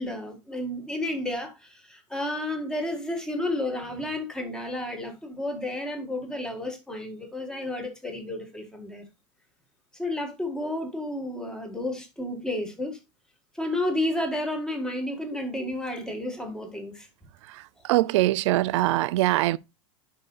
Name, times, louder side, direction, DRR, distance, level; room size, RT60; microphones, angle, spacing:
voice 1, 0.0-9.0 10.0-13.0 13.6-17.1, left 1 dB, 5° left, 1.6 m, -31 dB
voice 2, 17.4-19.6, right 17 dB, 65° right, 0.4 m, -23 dB
11.0 x 4.9 x 2.4 m
supercardioid pair, 155°, 16 cm